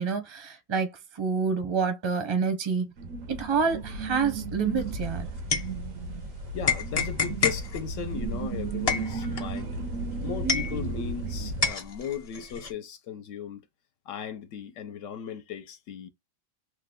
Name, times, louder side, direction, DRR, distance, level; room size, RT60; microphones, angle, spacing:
voice 1, 0.0-2.9 3.3-5.3, right 5 dB, 35° right, 0.5 m, -28 dB
sound 1, 3.0-11.7, right 3 dB, 90° right, 1.0 m, -34 dB
sound 2, 4.8-6.3 6.6-11.2 11.6-12.7, left 5 dB, 45° left, 0.5 m, -29 dB
voice 2, 6.5-9.7 10.2-13.6 14.1-16.1, left 8 dB, 80° left, 0.9 m, -37 dB
3.1 x 2.1 x 3.5 m
omnidirectional pair, 1.3 m